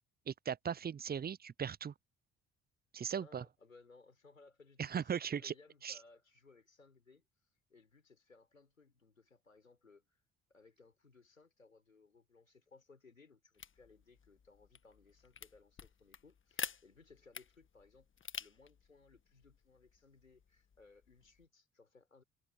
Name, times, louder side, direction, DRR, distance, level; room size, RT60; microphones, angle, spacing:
voice 1, 0.3-1.9 2.9-3.4 4.8-5.5 5.8-6.0, right 7 dB, 25° right, 0.7 m, -38 dB
voice 2, 3.1-7.3 7.7-10.2 10.5-18.1 18.4-22.2, left 4 dB, 90° left, 5.8 m, -63 dB
sound 1, 13.5-21.5, left 7 dB, 30° left, 1.6 m, -50 dB
figure-of-eight pair, 45°, 38 cm